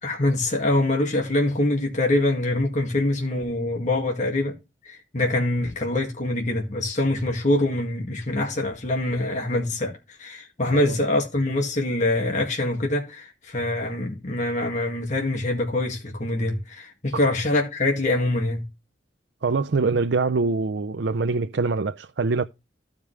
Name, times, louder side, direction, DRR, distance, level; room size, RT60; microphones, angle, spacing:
voice 1, 0.0-4.5 4.8-18.6, left 2 dB, 40° left, 1.9 m, -24 dB
voice 2, 19.4-22.4, right 4 dB, 65° right, 0.5 m, -24 dB
15.0 x 5.2 x 3.2 m
head